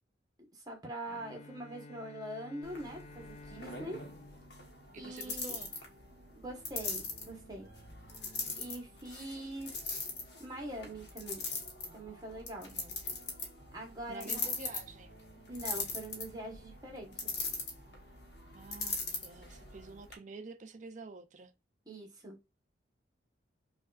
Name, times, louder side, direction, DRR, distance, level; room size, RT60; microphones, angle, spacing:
voice 1, 0.5-4.0 5.0-5.6 6.3-7.7 8.5-9.7 10.4-11.4 11.9-12.7 13.7-14.5 15.5-17.3 21.9-22.4, right 1 dB, 20° right, 1.1 m, -43 dB
Bowed string instrument, 1.1-5.9, left 3 dB, 35° left, 0.4 m, -53 dB
sound 1, 2.6-20.2, left 4 dB, 65° left, 1.1 m, -41 dB
sound 2, 2.8-20.0, right 1 dB, 55° right, 0.9 m, -60 dB
voice 2, 4.9-5.8 12.6-13.0 14.1-15.1 18.5-21.5, right 4 dB, 40° right, 0.4 m, -49 dB
5.1 x 2.4 x 2.4 m
head